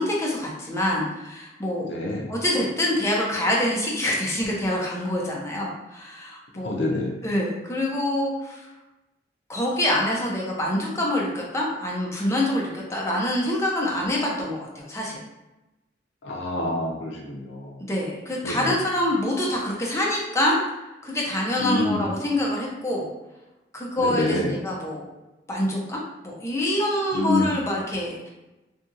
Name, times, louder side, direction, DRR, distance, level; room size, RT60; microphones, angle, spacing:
voice 1, 0.0-1.9 2.3-6.7 7.2-8.7 9.5-15.2 17.8-20.6 21.0-23.1 23.7-25.0 25.5-28.3, left 1 dB, 15° left, -3 dB, 0.5 m, -26 dB
voice 2, 1.8-2.3 6.6-7.1 16.2-17.8 18.4-18.7 21.6-22.1 24.0-24.6 27.1-27.5, left 2 dB, 75° left, 0 dB, 0.4 m, -26 dB
2.7 x 2.7 x 2.4 m, 1.0 s
head